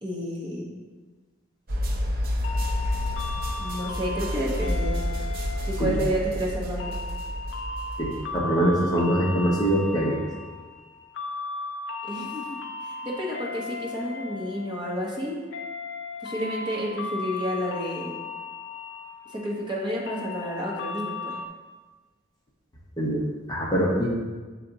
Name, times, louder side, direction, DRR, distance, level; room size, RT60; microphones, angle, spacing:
voice 1, 0.0-0.8 3.6-4.9 5.7-7.0 12.0-15.4 16.2-18.2 19.3-21.4, equal, 25° right, -4 dB, 1.0 m, -30 dB
sound 1, 1.7-8.4, equal, 50° right, 0.6 m, -29 dB
sound 2, 2.4-21.5, left 3 dB, 60° left, 0.4 m, -36 dB
voice 2, 8.0-10.2 23.0-24.1, equal, 20° left, -3 dB, 0.7 m, -24 dB
7.5 x 3.3 x 3.9 m, 1.3 s
head